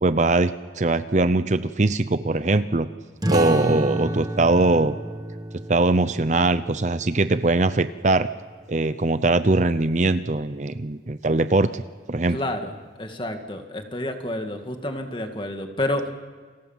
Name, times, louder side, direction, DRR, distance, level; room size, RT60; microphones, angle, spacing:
voice 1, 0.0-2.9 3.3-5.0 5.7-8.3 8.7-11.8 12.1-12.4, right 2 dB, 40° right, 12 dB, 0.7 m, -21 dB
sound 1, 3.2-8.4, right 1 dB, 20° right, 1.4 m, -30 dB
voice 2, 12.3-12.7 13.0-16.1, left 1 dB, 25° left, 5 dB, 2.2 m, -29 dB
29.5 x 25.0 x 7.4 m, 1.5 s
head